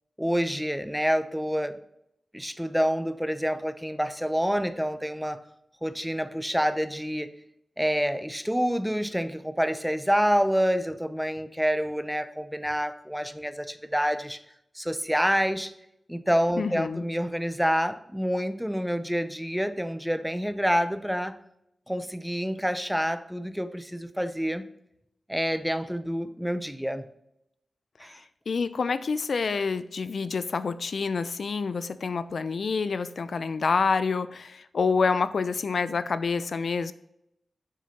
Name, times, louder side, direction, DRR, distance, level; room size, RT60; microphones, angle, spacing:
voice 1, 0.2-1.8 2.3-5.4 5.8-7.3 7.8-14.4 14.7-15.7 16.1-21.4 21.9-24.6 25.3-27.1 28.0-28.2, equal, ahead, 11 dB, 0.5 m, -27 dB
voice 2, 16.6-17.0 28.5-36.9, left 5 dB, 65° left, 13 dB, 0.4 m, -27 dB
6.7 x 6.4 x 2.8 m, 0.79 s
wide cardioid pair, 120°, 0 cm